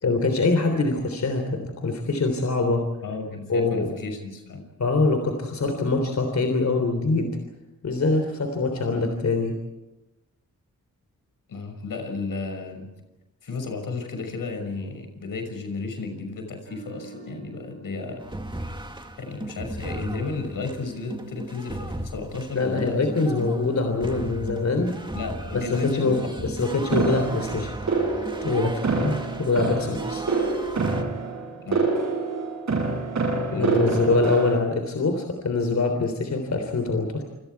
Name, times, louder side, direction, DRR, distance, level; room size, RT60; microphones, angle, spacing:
voice 1, 0.0-2.8 3.5-3.9 4.8-7.4 7.8-9.6 22.6-25.0 25.5-27.7 28.4-30.2 33.5-37.2, left 3 dB, 55° left, 5 dB, 3.5 m, -24 dB
voice 2, 3.0-4.7 11.5-12.9 13.4-18.2 19.2-23.0 25.1-26.4 31.6-32.0 33.5-34.1, left 3 dB, 80° left, 5 dB, 6.0 m, -33 dB
sound 1, 16.6-19.9 20.2-20.4, right 3 dB, 30° right, 7.2 m, -47 dB
sound 2, 18.2-31.0, right 1 dB, 15° right, 2.1 m, -36 dB
sound 3, 26.9-34.6, right 3 dB, 60° right, 8.0 m, -26 dB
28.5 x 26.5 x 4.7 m, 1.0 s
wide cardioid pair, 110°, 33 cm